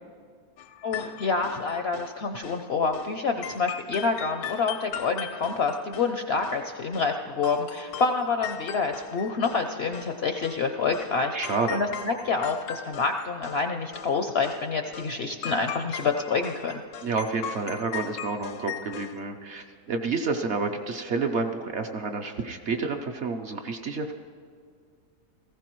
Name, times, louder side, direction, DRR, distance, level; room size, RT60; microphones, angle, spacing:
sound 1, 0.6-2.1 2.4-2.6 2.9-3.1 3.4-7.1 7.4-9.7 9.9-10.6 10.9-11.1 11.4-13.7 13.9-14.1 14.4-14.6 14.9-15.1 15.4-19.2, left 9 dB, 80° left, 1.1 m, -39 dB
voice 1, 0.8-16.8, left 4 dB, 65° left, 5 dB, 0.6 m, -27 dB
voice 2, 11.3-11.8 17.0-24.1, right 4 dB, 60° right, 4 dB, 0.8 m, -29 dB
18.5 x 15.0 x 3.0 m, 2.2 s
omnidirectional pair, 1.6 m